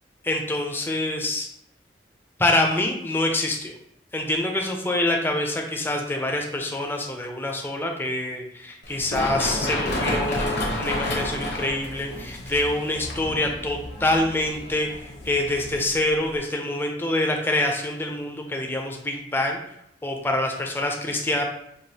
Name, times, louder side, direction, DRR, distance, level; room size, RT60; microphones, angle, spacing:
voice 1, 0.2-1.5 2.4-3.7 4.1-19.6 20.0-21.4, left 1 dB, 10° left, 2 dB, 0.4 m, -26 dB
Run, 8.8-16.4, left 1 dB, 70° left, 0.8 m, -30 dB
4.7 x 2.4 x 2.7 m, 0.76 s
head